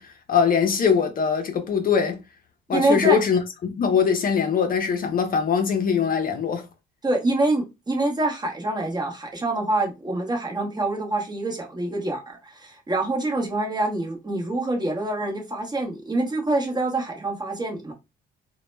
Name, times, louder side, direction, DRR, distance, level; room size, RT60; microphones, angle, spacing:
voice 1, 0.0-2.2 2.7-6.6, left 6 dB, 45° left, 0.5 m, -22 dB
voice 2, 2.7-3.2 7.0-17.9, right 2 dB, 20° right, 0.8 m, -25 dB
2.1 x 2.0 x 3.1 m
cardioid pair, 90°, 20 cm